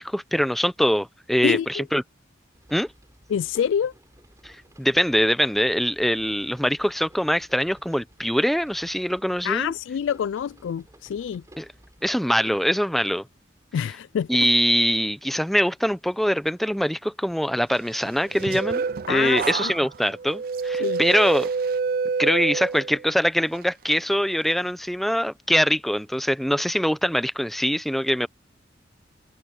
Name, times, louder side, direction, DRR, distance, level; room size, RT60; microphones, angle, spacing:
voice 1, 0.0-2.0 2.7-2.9 4.4-4.5 4.8-9.7 11.6-11.7 12.0-13.2 14.3-18.8 19.1-21.5 22.2-28.3, equal, ahead, 0.7 m, -23 dB
voice 2, 1.4-1.8 3.3-3.9 9.4-11.4 13.7-14.3 19.1-19.7 20.8-21.0, left 8 dB, 90° left, 0.3 m, -26 dB
sound 1, 2.5-12.2, right 1 dB, 15° right, 6.3 m, -54 dB
sound 2, 18.1-23.1 23.5-23.9, right 5 dB, 50° right, 0.4 m, -28 dB
head